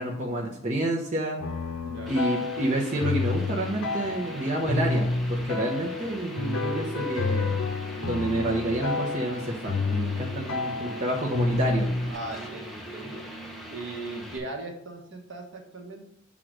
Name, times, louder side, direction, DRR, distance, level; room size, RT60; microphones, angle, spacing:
voice 1, 0.0-1.4 2.1-7.6 8.0-11.9, right 1 dB, 35° right, -2 dB, 0.9 m, -29 dB
sound 1, 1.4-12.1, left 3 dB, 80° left, 0.8 m, -29 dB
voice 2, 1.8-2.1 10.4-10.6 12.1-13.3 13.7-16.1, right 2 dB, 55° right, 2 dB, 1.2 m, -38 dB
sound 2, 2.1-14.4, right 1 dB, ahead, 0.8 m, -41 dB
6.1 x 3.8 x 6.2 m, 0.75 s
head